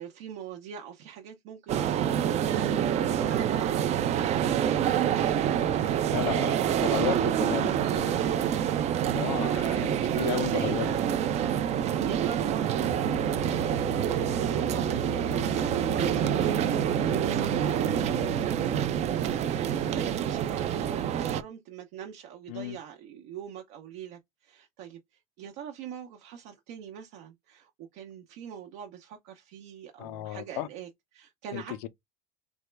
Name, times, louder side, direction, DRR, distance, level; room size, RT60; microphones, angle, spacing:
voice 1, 0.0-2.0 2.2-2.7 8.1-9.0 9.8-19.2 19.5-31.9, right 9 dB, 65° right, 0.7 m, -43 dB
sound 1, 1.7-21.4, right 9 dB, 35° right, 0.4 m, -27 dB
voice 2, 6.1-8.4 9.1-10.9 22.5-22.8 30.0-30.7 31.5-31.9, left 14 dB, 85° left, 0.5 m, -34 dB
Musical instrument, 12.8-18.5, left 4 dB, 10° left, 0.6 m, -40 dB
3.4 x 2.1 x 3.2 m
supercardioid pair, 130°, 19 cm